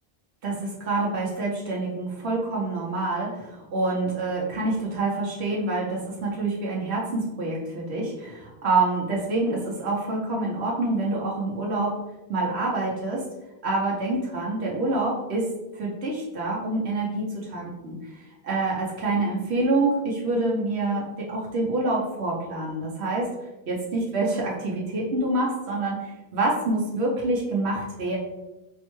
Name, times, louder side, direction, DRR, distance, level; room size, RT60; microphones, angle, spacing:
voice 1, 0.4-11.9 12.3-13.2 13.6-15.5 15.7-23.3 23.7-28.2, right 2 dB, 80° right, -4 dB, 1.1 m, -27 dB
4.3 x 2.1 x 3.0 m, 1.0 s
omnidirectional pair, 1.1 m